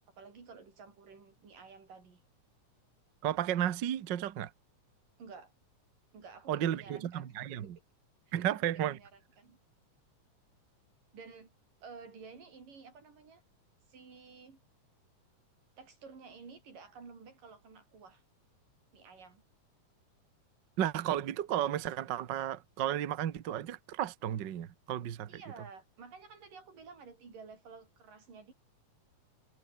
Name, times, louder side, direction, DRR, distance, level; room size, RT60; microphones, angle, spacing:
voice 1, 0.2-2.2 5.2-5.5 6.1-7.3 8.3-8.4 8.7-9.6 11.1-11.5 11.8-13.4 13.9-14.6 15.8-18.2 18.9-19.4 25.3-28.5, right 5 dB, 85° right, 7.0 m, -52 dB
voice 2, 3.2-4.5 6.5-7.8 8.3-9.0 20.8-25.4, right 11 dB, 60° right, 1.1 m, -33 dB
omnidirectional pair, 3.7 m